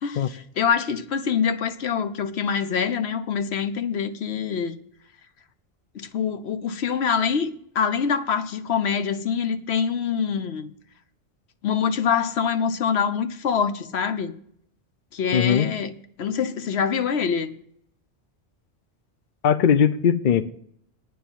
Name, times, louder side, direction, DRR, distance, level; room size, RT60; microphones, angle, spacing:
voice 1, 0.0-4.8 5.9-10.7 11.6-14.3 15.1-15.9 16.2-17.5, left 7 dB, 75° left, 1.0 m, -25 dB
voice 2, 15.3-15.7 19.4-20.4, left 8 dB, 55° left, 0.7 m, -19 dB
9.3 x 6.7 x 8.7 m
omnidirectional pair, 1.1 m